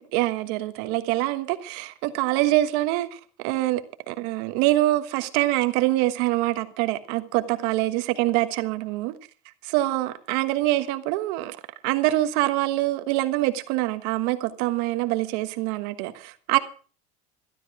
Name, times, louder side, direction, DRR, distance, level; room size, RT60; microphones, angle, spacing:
voice 1, 0.0-9.1 9.6-11.6 11.8-16.6, right 16 dB, 70° right, 1.4 m, -25 dB
13.0 x 12.5 x 4.8 m
supercardioid pair, 130°, 17 cm